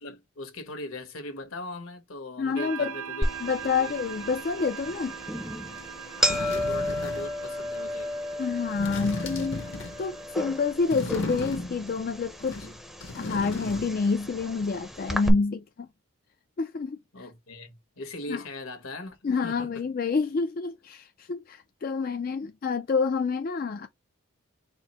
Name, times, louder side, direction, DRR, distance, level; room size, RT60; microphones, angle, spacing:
voice 1, 0.0-3.3 3.6-4.0 6.1-8.1 9.1-9.2 17.1-19.8, left 2 dB, 75° left, 1.3 m, -40 dB
voice 2, 2.4-2.9 3.4-5.2 8.4-9.6 10.0-12.7 13.2-15.9 16.6-17.0 18.3-18.4 19.2-23.9, left 4 dB, 40° left, 0.3 m, -28 dB
sound 1, 2.6-10.7, right 7 dB, 75° right, 0.6 m, -42 dB
sound 2, 3.2-15.3, left 1 dB, ahead, 0.6 m, -33 dB
sound 3, 5.8-5.9 6.2-7.4 8.7-10.1 10.9-12.0 12.4-14.1 14.3-14.4, left 2 dB, 55° left, 0.8 m, -36 dB
4.5 x 2.0 x 4.2 m
head